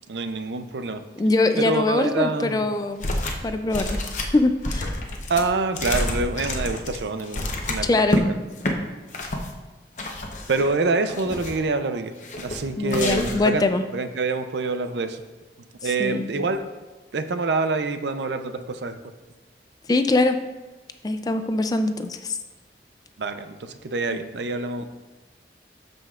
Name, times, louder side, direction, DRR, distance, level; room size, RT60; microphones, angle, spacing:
voice 1, 0.1-1.0 1.6-2.7 5.3-7.4 7.7-7.9 8.3-8.4 10.5-13.6 13.9-15.2 15.8-16.7 17.1-19.0 23.2-24.8, right 3 dB, 80° right, 9 dB, 0.5 m, -26 dB
voice 2, 1.2-3.1 3.4-4.0 4.3-5.0 7.8-8.2 12.8-13.8 16.0-16.3 19.9-20.4 21.0-22.4 24.1-24.2, left 2 dB, 20° left, 8 dB, 0.3 m, -22 dB
sound 1, 3.0-3.5 3.7-8.2 8.6-8.7 9.1-9.5 10.0-10.7 11.1-11.7 12.2-12.6 12.9-13.5, left 1 dB, 45° left, 0.8 m, -28 dB
13.0 x 5.2 x 2.4 m, 1.2 s
head